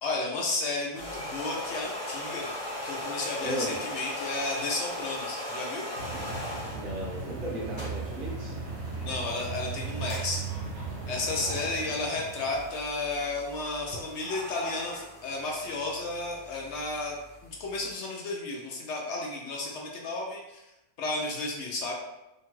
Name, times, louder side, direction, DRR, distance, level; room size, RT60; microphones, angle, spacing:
voice 1, 0.0-2.5 2.8-5.8 9.0-10.4 11.1-17.2 17.4-20.6 21.0-21.9, left 3 dB, 65° left, -1 dB, 0.8 m, -33 dB
sound 1, 0.8-6.8 7.5-17.9, left 1 dB, 30° left, 0.6 m, -39 dB
voice 2, 3.4-3.8 6.7-8.5 11.4-11.8, right 1 dB, 45° right, -4 dB, 0.8 m, -36 dB
sound 2, 5.9-12.8, right 4 dB, 70° right, 1.1 m, -37 dB
2.8 x 2.2 x 3.0 m, 0.94 s
omnidirectional pair, 1.4 m